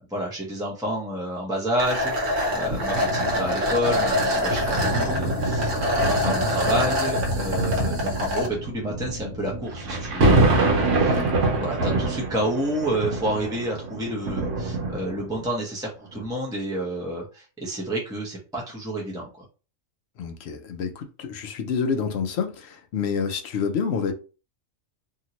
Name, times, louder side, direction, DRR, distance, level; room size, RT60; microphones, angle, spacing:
voice 1, 0.1-11.3 11.5-19.4, right 1 dB, 5° right, 0.6 m, -30 dB
sound 1, 1.8-8.5, left 1 dB, 45° right, 1.0 m, -25 dB
sound 2, 2.6-15.4 16.1-16.3, right 2 dB, 75° right, 1.2 m, -26 dB
voice 2, 11.1-11.4 20.2-24.1, left 6 dB, 65° left, 0.7 m, -28 dB
2.8 x 2.6 x 2.9 m
omnidirectional pair, 1.3 m